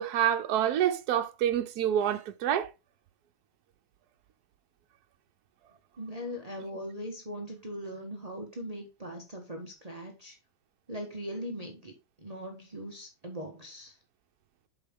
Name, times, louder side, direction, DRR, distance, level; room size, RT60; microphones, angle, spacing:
voice 1, 0.0-2.7, right 10 dB, 75° right, 1.3 m, -27 dB
voice 2, 6.0-10.4 10.9-14.0, equal, 25° right, 1.4 m, -40 dB
7.7 x 5.6 x 3.7 m
omnidirectional pair, 1.7 m